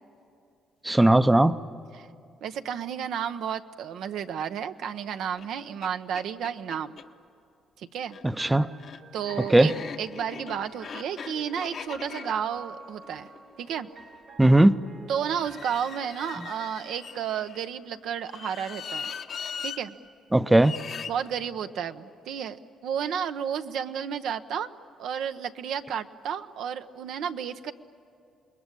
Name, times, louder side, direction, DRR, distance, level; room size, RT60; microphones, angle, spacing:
voice 1, 0.8-1.6 8.2-8.7 9.5-9.7 14.4-14.8 20.3-20.7, right 1 dB, 10° right, 13 dB, 0.6 m, -18 dB
voice 2, 2.4-7.0 7.8-8.2 9.1-13.3 13.6-13.9 15.1-19.1 19.6-19.9 21.1-22.6 22.8-24.7 25.0-27.7, right 8 dB, 80° right, 8 dB, 0.8 m, -32 dB
sound 1, 5.4-5.5 5.8-5.9 6.1-7.1 8.0-14.2 15.3-17.6 18.2-19.8 20.6-21.1, left 6 dB, 60° left, 1.1 m, -40 dB
sound 2, 8.4-18.2, right 4 dB, 55° right, 1.8 m, -49 dB
28.0 x 21.0 x 9.9 m, 2.5 s
cardioid pair, 90°, 0 cm